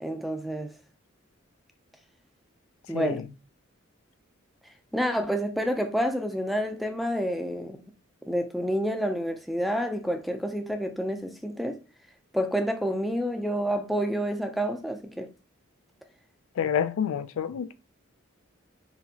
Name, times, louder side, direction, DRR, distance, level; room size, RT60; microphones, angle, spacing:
voice 1, 0.0-0.7 2.9-3.2 4.9-7.8 8.3-11.8 12.3-15.3, equal, ahead, 0.4 m, -28 dB
voice 2, 2.9-3.3 16.6-17.7, left 8 dB, 80° left, 0.3 m, -28 dB
4.2 x 2.8 x 2.7 m
head